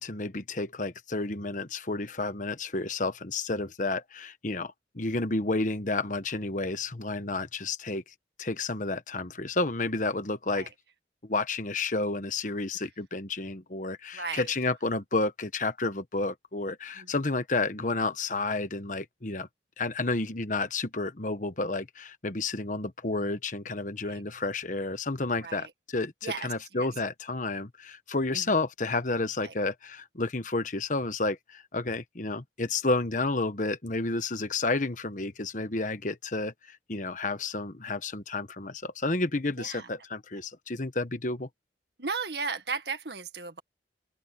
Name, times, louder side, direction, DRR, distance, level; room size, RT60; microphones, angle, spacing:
voice 1, 0.0-10.7 11.2-19.5 19.8-41.5, left 3 dB, 45° left, 1.2 m, -31 dB
voice 2, 14.1-14.4 17.0-17.1 24.0-24.2 25.4-25.7 26.2-26.5 26.8-26.9 28.3-28.4 29.4-29.5 39.6-39.9 42.0-43.6, right 4 dB, 65° right, 1.9 m, -35 dB
open air
head